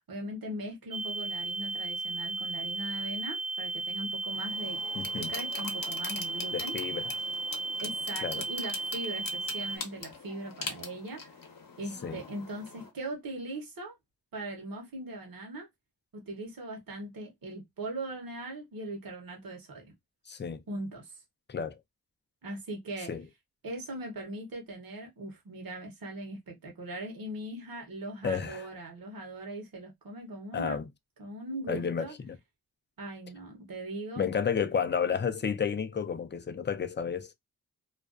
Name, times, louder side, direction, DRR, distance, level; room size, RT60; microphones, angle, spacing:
voice 1, 0.1-4.8 5.2-6.8 7.8-11.3 11.8-14.0 14.3-15.7 16.1-19.8 20.7-21.1 22.4-23.1 23.6-30.8 31.2-32.1 33.0-34.3, right 1 dB, 65° right, 0.9 m, -40 dB
sound 1, 0.9-9.8, right 3 dB, 40° right, 0.4 m, -35 dB
sound 2, 4.3-12.9, left 4 dB, 65° left, 0.8 m, -43 dB
voice 2, 4.9-5.3 6.5-7.2 8.2-8.4 12.0-12.2 20.3-20.6 21.5-21.8 23.1-23.3 28.2-28.7 30.5-30.9 31.7-32.4 34.2-37.3, left 6 dB, 30° left, 0.4 m, -31 dB
2.4 x 2.2 x 2.3 m
wide cardioid pair, 65°, 37 cm